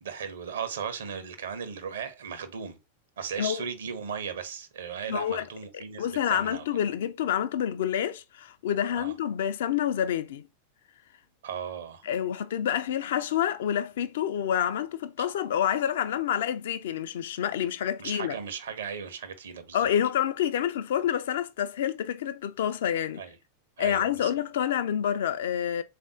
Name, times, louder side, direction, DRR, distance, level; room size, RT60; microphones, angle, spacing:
voice 1, 0.0-2.8 3.2-6.6 9.0-9.1 11.4-12.1 18.0-19.9 23.2-23.4 23.8-24.3, right 7 dB, 65° right, 0.7 m, -36 dB
voice 2, 5.1-5.5 5.7-10.5 12.0-18.3 19.7-23.2 23.8-25.8, left 9 dB, 60° left, 0.4 m, -28 dB
3.6 x 2.5 x 3.5 m
figure-of-eight pair, 90°, 0 cm